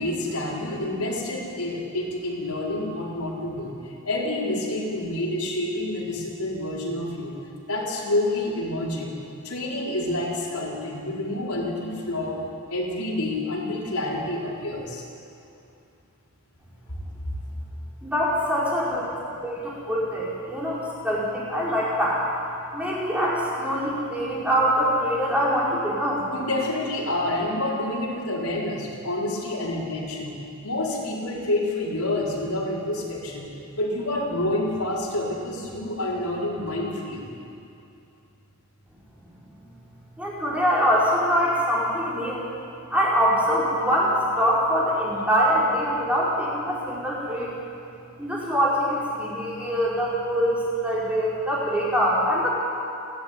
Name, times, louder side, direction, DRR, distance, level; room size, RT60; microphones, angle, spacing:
voice 1, 0.0-7.4 7.7-9.1 9.4-12.4 12.7-15.0 16.9-17.4 26.3-30.4 30.6-37.2, left 1 dB, 85° left, -4 dB, 5.1 m, -28 dB
voice 2, 18.0-22.3 22.7-26.2 40.2-42.5 42.9-47.5 48.2-52.5, equal, 5° right, -6 dB, 5.1 m, -24 dB
29.0 x 12.5 x 9.8 m, 2.6 s
head